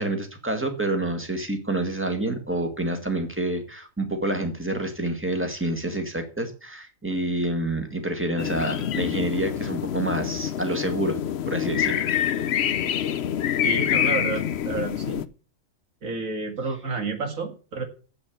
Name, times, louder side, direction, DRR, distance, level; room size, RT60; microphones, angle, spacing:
voice 1, 0.0-11.2 11.5-12.1, right 1 dB, 10° right, 6 dB, 1.8 m, -28 dB
sound 1, 8.4-15.2, left 9 dB, 60° left, 0.9 m, -26 dB
voice 2, 13.6-15.2 16.0-17.8, right 3 dB, 90° right, 5 dB, 2.5 m, -30 dB
7.9 x 6.9 x 8.2 m, 0.37 s
omnidirectional pair, 1.4 m